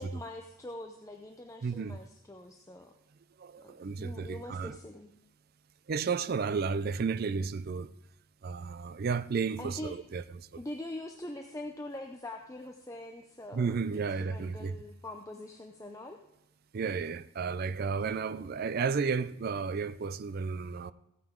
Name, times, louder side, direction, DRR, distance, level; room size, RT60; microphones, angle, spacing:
voice 1, 0.0-2.9 3.6-5.1 9.6-9.9 10.6-16.2, left 1 dB, 15° left, 0.5 m, -43 dB
voice 2, 1.6-2.0 3.4-4.8 5.9-7.9 8.4-10.5 13.5-14.8 16.7-20.9, right 5 dB, 45° right, 0.4 m, -33 dB
15.5 x 9.1 x 3.7 m
head